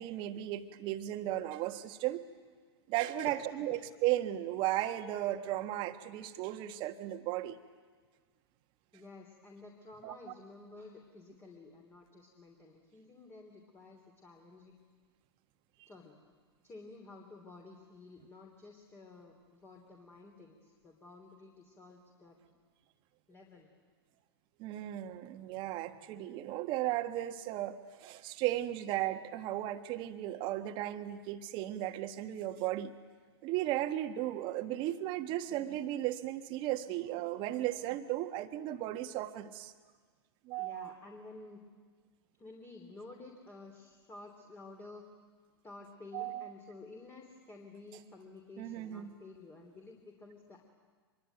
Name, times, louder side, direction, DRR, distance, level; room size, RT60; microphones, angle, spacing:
voice 1, 0.0-2.2 2.9-7.6 10.0-10.2 24.6-32.9 33.4-39.7 40.4-40.9 46.1-46.5 48.6-49.1, right 14 dB, 35° right, 8 dB, 1.4 m, -35 dB
voice 2, 8.9-14.8 15.9-16.1 16.6-22.4 23.3-23.7 40.6-41.6 42.4-45.0 45.6-50.7, left 3 dB, 15° left, 2 dB, 3.2 m, -52 dB
25.0 x 22.5 x 9.3 m, 1.5 s
figure-of-eight pair, 110°, 14 cm